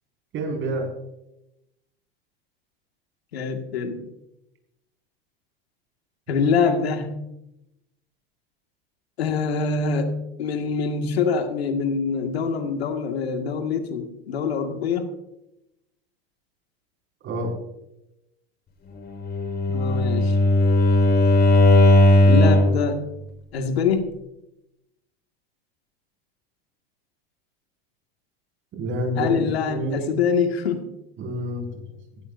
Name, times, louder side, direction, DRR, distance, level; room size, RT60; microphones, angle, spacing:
voice 1, 0.3-0.9 17.2-17.5 28.8-30.1 31.2-31.8, right 1 dB, 40° right, 2 dB, 5.6 m, -28 dB
voice 2, 3.3-4.0 6.3-7.2 9.2-15.1 19.7-20.4 22.2-23.0 23.5-24.1 29.2-30.8, left 5 dB, 85° left, 5 dB, 2.0 m, -24 dB
Bowed string instrument, 19.2-22.8, left 1 dB, 35° left, 4.0 m, -16 dB
16.5 x 15.0 x 2.7 m, 0.89 s
hypercardioid pair, 100°, 30 cm